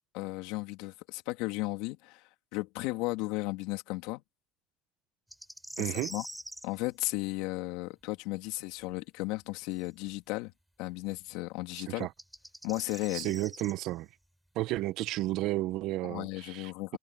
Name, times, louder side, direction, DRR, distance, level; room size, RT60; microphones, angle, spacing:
voice 1, 0.1-2.2 2.5-4.2 5.8-6.3 6.6-10.5 10.8-12.1 12.6-13.3 16.0-17.0, left 21 dB, 80° left, 2.8 m, -35 dB
sound 1, 5.3-6.7 9.8-9.9 12.0-13.7, equal, ahead, 6.0 m, -44 dB
voice 2, 5.8-6.1 11.9-12.1 13.1-14.1 14.5-17.0, right 17 dB, 70° right, 1.3 m, -32 dB
supercardioid pair, 85°, 0 cm